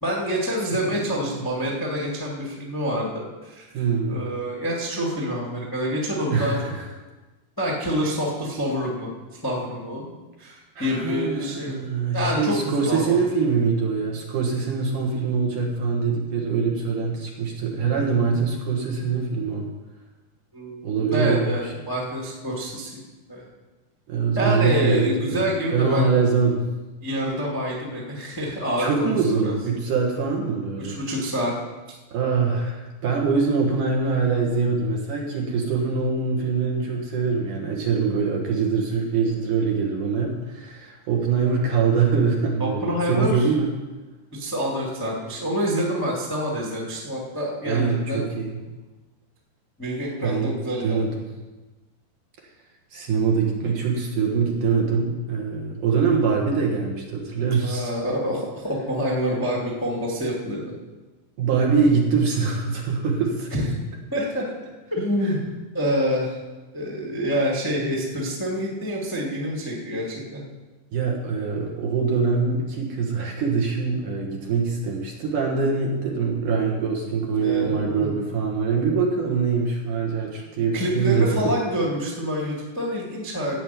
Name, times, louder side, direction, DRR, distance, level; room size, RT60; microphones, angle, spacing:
voice 1, 0.0-6.7 7.6-10.1 10.4-11.8 12.1-13.2 20.5-22.9 23.3-23.4 24.3-26.0 27.0-28.9 29.3-29.5 30.8-31.5 42.6-43.5 44.3-48.2 49.8-51.0 57.6-60.7 63.5-63.7 64.1-64.5 64.9-65.4 65.7-66.4 66.7-70.4 77.3-78.1 80.7-83.5, equal, 15° left, -3 dB, 0.6 m, -27 dB
voice 2, 3.7-4.2 6.3-6.8 10.8-19.7 20.8-21.7 24.1-25.4 25.7-26.6 28.8-31.0 32.1-43.7 47.6-48.6 50.2-50.5 50.8-51.3 52.9-57.9 61.4-63.5 65.3-65.4 70.9-81.4, right 5 dB, 60° right, 0 dB, 2.6 m, -23 dB
14.0 x 5.4 x 9.1 m, 1.2 s
omnidirectional pair, 5.0 m